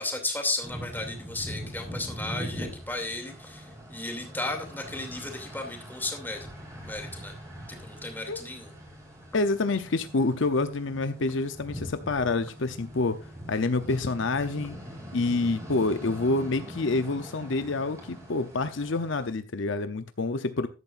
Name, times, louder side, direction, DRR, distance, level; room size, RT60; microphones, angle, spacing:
voice 1, 0.0-6.5 6.8-7.3 7.7-8.7, left 2 dB, 10° left, 2.6 m, -34 dB
sound 1, 0.6-19.3, equal, 15° right, 4.4 m, -42 dB
voice 2, 9.3-13.2 13.5-14.8 15.1-20.7, left 3 dB, 60° left, 0.7 m, -27 dB
13.5 x 11.0 x 2.5 m
head